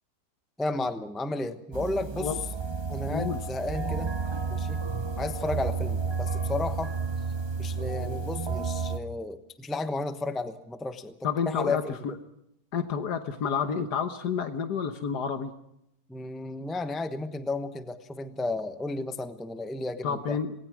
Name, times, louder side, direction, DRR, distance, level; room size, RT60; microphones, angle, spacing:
voice 1, 0.6-2.4 2.9-4.1 4.5-4.8 5.2-6.9 7.6-11.1 11.5-12.0 16.1-20.4, left 2 dB, ahead, 9 dB, 0.8 m, -33 dB
sound 1, 1.7-9.0, right 4 dB, 30° right, 0.5 m, -31 dB
voice 2, 3.1-3.4 11.2-12.1 12.7-15.5 20.0-20.5, left 6 dB, 85° left, 8 dB, 1.7 m, -29 dB
27.5 x 19.5 x 6.1 m, 0.80 s
omnidirectional pair, 1.7 m